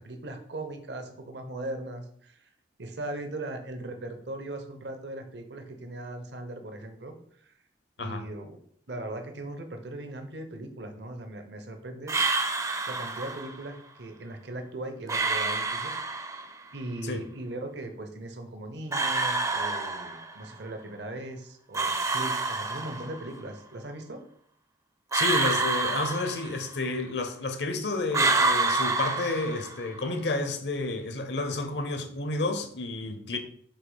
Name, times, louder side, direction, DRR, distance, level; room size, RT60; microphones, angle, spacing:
voice 1, 0.0-2.5 2.8-7.5 8.0-8.6 8.9-12.1 12.9-15.9 16.7-24.2, right 2 dB, 75° right, 0.9 m, -39 dB
sound 1, 12.1-13.6 15.1-16.6 18.9-20.5 21.7-23.3 25.1-26.9 28.1-30.0, right 3 dB, 20° right, 0.4 m, -28 dB
voice 2, 25.1-33.4, left 2 dB, 75° left, 0.9 m, -30 dB
6.7 x 2.9 x 5.5 m
head